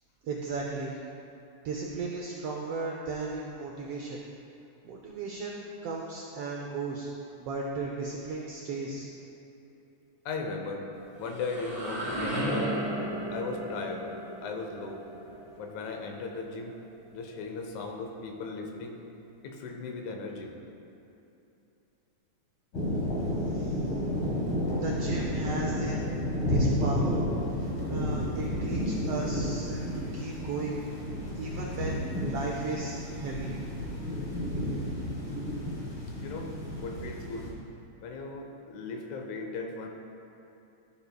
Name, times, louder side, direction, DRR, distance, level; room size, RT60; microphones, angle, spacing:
voice 1, 0.2-1.0 1.6-4.2 4.8-7.1 7.4-9.1 23.5-23.8 24.8-26.0 26.5-27.2 27.9-30.8 31.3-32.0 32.2-33.5, right 3 dB, 80° right, -1 dB, 1.3 m, -35 dB
voice 2, 10.3-10.9 11.2-12.7 13.3-14.1 14.4-15.1 15.6-16.8 17.1-19.0 19.4-20.5 31.5-31.8 36.2-36.5 36.8-37.5 38.0-39.9, left 4 dB, 80° left, 3 dB, 2.1 m, -37 dB
sound 1, 11.0-16.7, right 1 dB, 25° right, 1.7 m, -35 dB
sound 2, 22.7-37.5, left 1 dB, 50° left, 2.0 m, -31 dB
12.0 x 7.0 x 2.2 m, 2.9 s
omnidirectional pair, 3.4 m